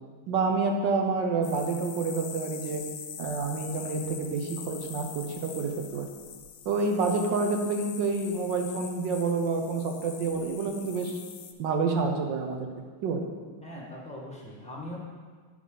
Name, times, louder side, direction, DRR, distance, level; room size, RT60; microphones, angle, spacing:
voice 1, 0.3-2.8 3.2-6.1 6.6-11.2 11.6-12.7 13.0-13.3, right 4 dB, 65° right, 3 dB, 1.3 m, -28 dB
sound 1, 1.4-11.5, left 8 dB, 70° left, 1.1 m, -43 dB
voice 2, 13.6-15.0, left 1 dB, 5° left, -5 dB, 1.1 m, -41 dB
9.6 x 5.5 x 3.8 m, 1.5 s
omnidirectional pair, 2.4 m